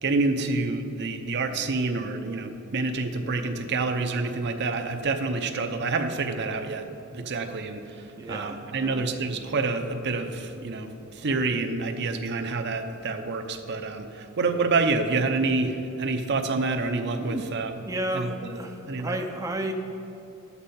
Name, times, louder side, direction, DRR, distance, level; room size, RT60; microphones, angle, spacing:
voice 1, 0.0-6.9 7.1-17.7 18.1-18.6 18.9-19.2, right 3 dB, 55° right, 5 dB, 0.7 m, -28 dB
voice 2, 8.2-9.0 17.2-17.5 17.8-19.7, right 1 dB, 15° right, 2 dB, 0.5 m, -32 dB
10.5 x 8.2 x 4.3 m, 2.7 s
head